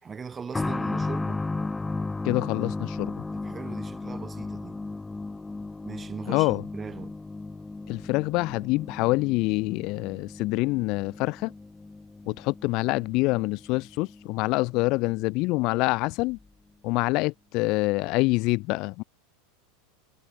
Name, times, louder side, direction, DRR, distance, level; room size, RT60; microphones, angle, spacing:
voice 1, 0.0-1.4 3.3-4.8 5.8-7.2, right 6 dB, 10° right, 1.7 m, -39 dB
sound 1, 0.5-15.0 15.2-15.3 16.3-16.4, left 3 dB, 5° left, 1.9 m, -35 dB
voice 2, 2.2-3.1 6.3-6.6 7.9-11.5 12.3-16.4 16.8-19.0, left 23 dB, 35° left, 0.4 m, -26 dB
supercardioid pair, 175°, 0 cm